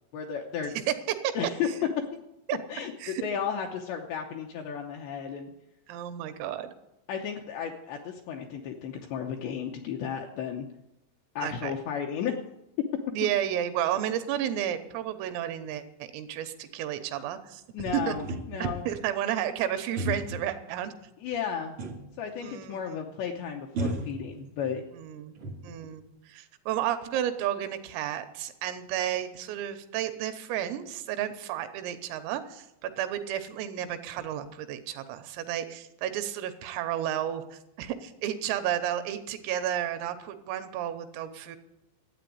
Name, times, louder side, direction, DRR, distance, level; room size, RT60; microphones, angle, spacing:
voice 1, 0.1-0.8 1.4-1.7 2.7-5.5 7.1-10.7 11.4-12.4 17.7-18.8 21.2-21.8 22.2-24.8, left 7 dB, 75° left, 2 dB, 2.7 m, -34 dB
voice 2, 0.9-1.3 2.5-2.6 3.0-3.2 5.9-6.7 11.4-11.7 13.1-18.2 18.6-20.9 22.4-23.1 24.9-25.4 25.6-41.6, right 11 dB, 85° right, 9 dB, 3.6 m, -32 dB
sound 1, 18.2-18.9 20.0-20.5 21.8-22.2 22.5-22.6 23.7-24.8 25.2-26.0, right 1 dB, 60° right, 1.4 m, -34 dB
13.0 x 8.9 x 9.4 m, 0.86 s
omnidirectional pair, 6.0 m